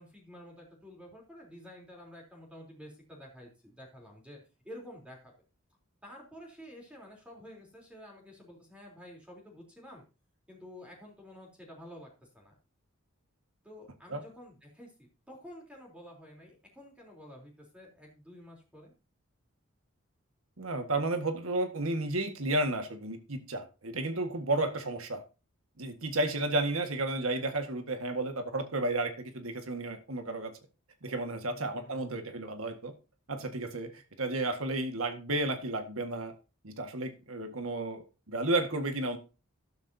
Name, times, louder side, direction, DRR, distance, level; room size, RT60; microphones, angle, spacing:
voice 1, 0.0-4.4 4.6-5.3 6.0-10.0 10.5-12.5 13.6-14.9 15.3-18.9 31.5-32.2, equal, 5° right, 3.5 m, -50 dB
voice 2, 20.6-25.2 25.8-30.6 31.0-32.9 33.3-36.3 36.6-39.2, right 2 dB, 75° right, 1.7 m, -32 dB
13.0 x 12.0 x 2.8 m
head